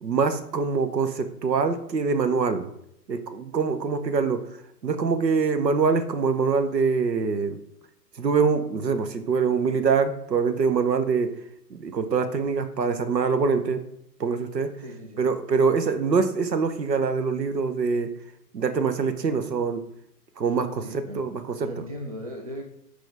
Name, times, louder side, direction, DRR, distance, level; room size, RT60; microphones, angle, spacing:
voice 1, 0.0-2.7 3.1-4.4 4.8-7.6 8.2-11.3 11.7-13.8 14.2-14.7 15.2-18.1 18.5-19.8 20.4-21.7, right 5 dB, 85° right, 9 dB, 0.8 m, -24 dB
voice 2, 14.8-15.2 20.8-21.3 21.7-22.6, equal, 25° right, 2 dB, 0.3 m, -37 dB
6.1 x 4.8 x 3.4 m, 0.77 s
figure-of-eight pair, 115°, 49 cm